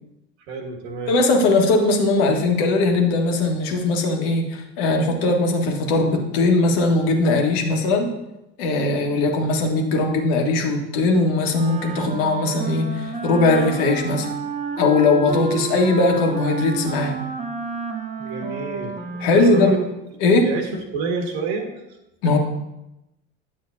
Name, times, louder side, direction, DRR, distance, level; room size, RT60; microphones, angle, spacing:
voice 1, 0.5-1.2 18.2-18.9 19.2-19.8 20.2-21.7 22.2-22.3, right 3 dB, 70° right, 3 dB, 1.7 m, -29 dB
voice 2, 1.1-8.1 8.6-14.3 14.8-17.2 19.2-19.8 20.2-20.5 22.2-22.4, left 2 dB, 60° left, 2 dB, 1.6 m, -19 dB
Wind instrument woodwind instrument, 11.5-20.0, right 4 dB, 20° right, 1.1 m, -31 dB
9.9 x 7.4 x 2.7 m, 0.93 s
hypercardioid pair, 70°, 33 cm